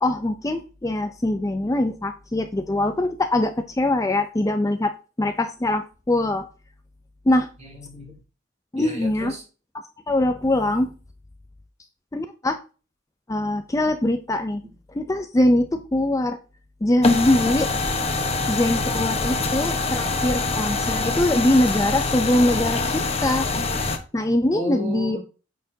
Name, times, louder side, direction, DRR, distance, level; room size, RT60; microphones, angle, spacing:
voice 1, 0.0-6.5 7.3-7.5 8.7-9.3 10.1-10.9 12.1-12.6 13.3-14.6 14.9-16.4 16.8-17.7 18.5-23.5 24.1-25.2, left 1 dB, 15° left, 7 dB, 0.5 m, -22 dB
voice 2, 7.6-8.2 8.8-9.4 24.5-25.2, equal, 35° right, -1 dB, 3.3 m, -34 dB
sound 1, 17.0-24.0, left 3 dB, 30° left, 1.1 m, -24 dB
8.8 x 6.6 x 2.7 m, 0.34 s
head